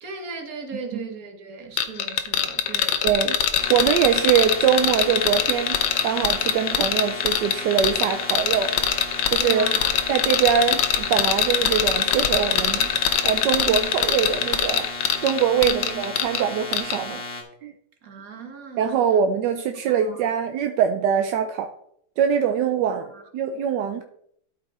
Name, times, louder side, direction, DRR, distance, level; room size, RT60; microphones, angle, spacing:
voice 1, 0.0-3.0 9.4-10.0 13.6-13.9 15.6-16.1 18.0-19.0 19.9-20.3 22.8-23.2, right 5 dB, 45° right, 1.6 m, -37 dB
sound 1, 1.8-16.4 16.7-17.0, left 9 dB, 65° left, 1.3 m, -23 dB
voice 2, 3.0-3.4 3.7-8.7 9.3-9.7 10.1-12.9 13.2-14.9 15.2-17.2 17.6-17.7 18.8-21.7 22.2-24.0, right 8 dB, 70° right, 1.1 m, -23 dB
sound 2, 3.6-17.4, left 2 dB, 15° left, 1.5 m, -35 dB
12.5 x 5.2 x 4.2 m
omnidirectional pair, 2.3 m